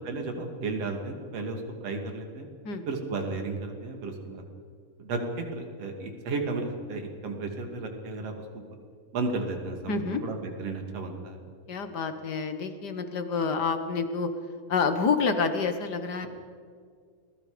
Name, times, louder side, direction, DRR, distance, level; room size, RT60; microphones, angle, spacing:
voice 1, 0.0-2.5 2.9-4.4 5.0-5.2 5.5-8.6 9.1-11.4, right 3 dB, 55° right, 3 dB, 3.5 m, -33 dB
voice 2, 9.9-10.2 11.7-14.3 14.7-16.3, left 5 dB, 55° left, 8 dB, 1.1 m, -28 dB
28.5 x 21.5 x 5.1 m, 2.1 s
omnidirectional pair, 3.6 m